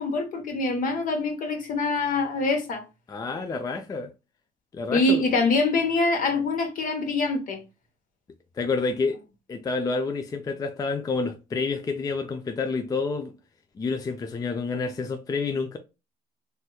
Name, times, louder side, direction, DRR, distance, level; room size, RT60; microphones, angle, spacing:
voice 1, 0.0-2.8 4.9-7.6, left 2 dB, 55° left, 1.1 m, -24 dB
voice 2, 3.1-4.1 4.7-5.2 8.5-9.2 9.5-13.3 13.8-15.8, left 4 dB, 20° left, 0.4 m, -28 dB
3.3 x 2.9 x 2.2 m
cardioid pair, 110°, 17 cm